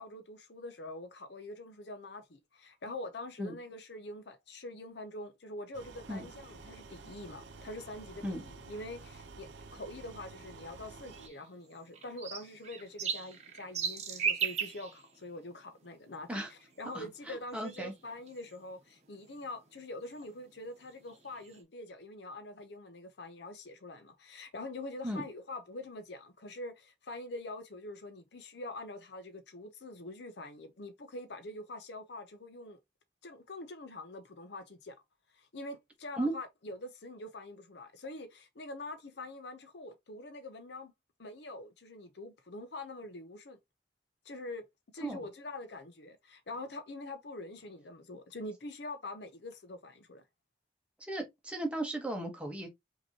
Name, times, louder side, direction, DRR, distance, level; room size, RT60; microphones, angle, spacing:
voice 1, 0.0-32.8 33.2-35.0 35.3-40.9 41.2-43.6 44.2-44.7 44.9-50.2, left 2 dB, 75° left, 0.7 m, -45 dB
sound 1, 5.7-11.3, right 4 dB, 85° right, 0.8 m, -50 dB
sound 2, 6.3-21.6, right 7 dB, 40° right, 1.0 m, -42 dB
voice 2, 16.9-17.9 25.0-25.2 36.2-36.3 45.0-45.2 51.1-52.7, right 1 dB, 5° right, 1.2 m, -36 dB
5.3 x 2.9 x 2.8 m
head